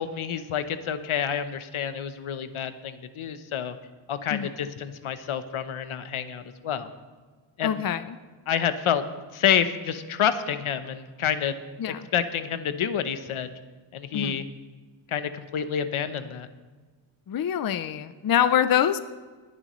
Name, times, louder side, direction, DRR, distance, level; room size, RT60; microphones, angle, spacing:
voice 1, 0.0-3.8 4.1-6.9 7.6-7.8 8.5-9.0 9.3-11.6 12.1-13.5 13.9-14.5 15.1-16.5, left 8 dB, 80° left, 11 dB, 0.9 m, -28 dB
voice 2, 7.6-8.2 11.8-12.1 14.1-14.5 17.3-19.0, left 9 dB, 45° left, 12 dB, 0.5 m, -25 dB
20.5 x 10.5 x 3.1 m, 1.4 s
wide cardioid pair, 125°, 49 cm